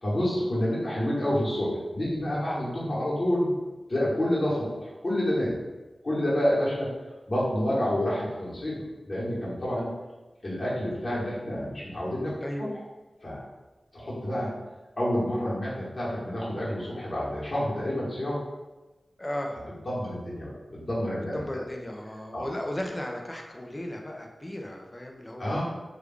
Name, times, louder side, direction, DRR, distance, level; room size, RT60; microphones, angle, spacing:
voice 1, 0.0-3.5 3.9-5.5 6.0-6.9 7.3-9.9 10.4-12.3 12.6-12.7 13.2-13.4 13.9-14.5 15.0-18.4 19.8-21.6 22.3-22.5 25.4-25.6, left 1 dB, 45° left, -8 dB, 1.4 m, -28 dB
voice 2, 2.1-3.0 12.4-12.7 19.2-19.6 21.3-25.6, left 1 dB, 30° left, 2 dB, 0.5 m, -36 dB
3.1 x 2.4 x 3.5 m, 1.1 s
wide cardioid pair, 55°, 0 cm